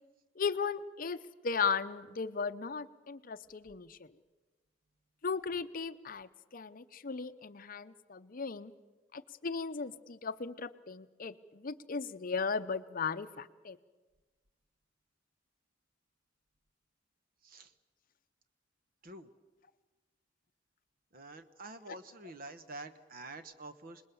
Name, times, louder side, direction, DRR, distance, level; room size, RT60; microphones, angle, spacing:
voice 1, 0.4-4.0 5.2-8.7 9.1-13.8, left 5 dB, 45° left, 12 dB, 0.7 m, -36 dB
voice 2, 21.1-24.0, right 2 dB, 50° right, 10 dB, 1.2 m, -47 dB
27.0 x 20.5 x 7.0 m, 1.2 s
head